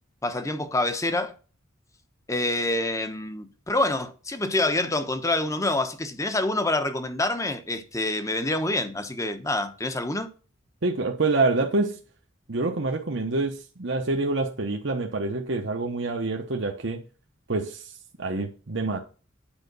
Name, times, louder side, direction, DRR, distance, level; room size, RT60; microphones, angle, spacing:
voice 1, 0.2-1.3 2.3-10.3, left 2 dB, 15° left, 1.0 m, -27 dB
voice 2, 10.8-12.0 12.5-17.0 17.5-17.9 18.2-19.0, right 3 dB, 65° right, 0.9 m, -26 dB
9.0 x 5.0 x 6.7 m
head